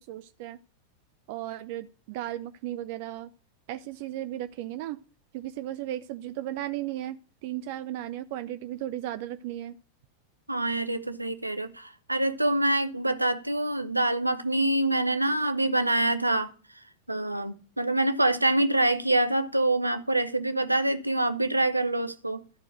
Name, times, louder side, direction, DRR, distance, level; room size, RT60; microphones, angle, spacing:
voice 1, 0.1-0.6 1.3-3.3 3.7-5.0 5.3-9.8, right 13 dB, 50° right, 0.4 m, -35 dB
voice 2, 10.5-16.5 17.1-22.4, right 1 dB, 85° right, 0.7 m, -25 dB
12.5 x 4.5 x 6.2 m
figure-of-eight pair, 90°, 0 cm